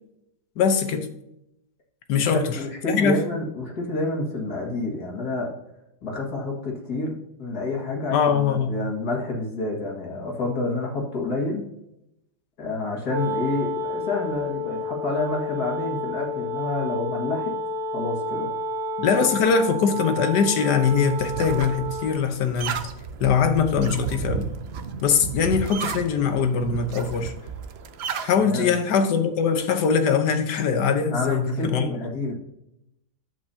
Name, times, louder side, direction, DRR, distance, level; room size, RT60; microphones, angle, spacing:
voice 1, 0.6-1.1 2.1-2.4 2.9-3.2 8.1-8.7 19.0-22.8 23.2-24.5 25.0-27.3 28.2-31.9, left 6 dB, 85° left, 1.5 m, -22 dB
voice 2, 2.1-5.5 6.0-11.6 12.6-17.5 17.9-18.5 28.4-28.7 31.1-32.3, left 2 dB, 70° left, 2.6 m, -29 dB
Wind instrument woodwind instrument, 13.0-22.3, left 1 dB, 35° right, 1.0 m, -30 dB
sound 1, 20.9-28.3, right 6 dB, 60° right, 0.6 m, -33 dB
10.5 x 7.7 x 2.8 m
omnidirectional pair, 1.8 m